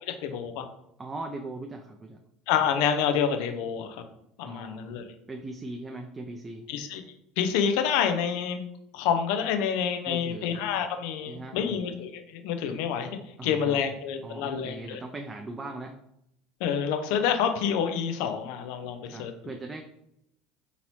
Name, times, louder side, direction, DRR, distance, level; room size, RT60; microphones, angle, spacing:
voice 1, 0.1-0.7 2.5-4.0 4.4-5.0 6.7-7.0 7.4-8.6 8.9-13.1 13.4-15.0 16.6-19.3, left 7 dB, 70° left, 7 dB, 0.5 m, -28 dB
voice 2, 1.0-2.2 4.5-6.7 10.1-10.5 11.3-11.8 13.4-13.8 14.2-16.0 18.8-19.8, right 2 dB, 25° right, 3 dB, 0.4 m, -40 dB
3.9 x 2.8 x 2.9 m, 0.78 s
hypercardioid pair, 75°, 0 cm